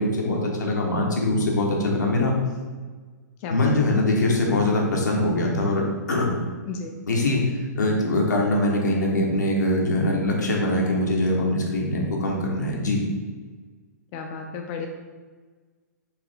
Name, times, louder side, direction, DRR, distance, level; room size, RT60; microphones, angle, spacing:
voice 1, 0.0-2.3 3.5-5.8 6.1-6.3 7.1-7.4 7.8-13.0, left 1 dB, 85° left, -1 dB, 1.0 m, -22 dB
voice 2, 6.7-7.0 14.1-14.9, left 5 dB, 40° left, 3 dB, 0.4 m, -33 dB
4.7 x 2.7 x 3.5 m, 1.4 s
hypercardioid pair, 125°, 9 cm